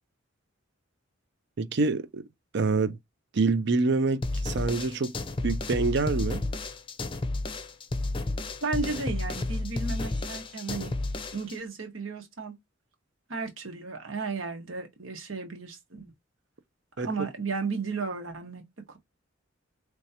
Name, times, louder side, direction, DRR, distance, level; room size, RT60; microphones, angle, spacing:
voice 1, 1.6-2.2 2.5-3.0 3.3-5.1 5.4-6.4 17.0-17.1, right 3 dB, 60° right, 0.5 m, -26 dB
sound 1, 4.2-11.6, left 2 dB, 25° left, 0.6 m, -32 dB
voice 2, 8.6-10.9 11.3-12.5 13.3-16.1 17.0-18.6 18.9-19.0, right 4 dB, 80° right, 1.4 m, -34 dB
4.5 x 3.2 x 2.8 m
head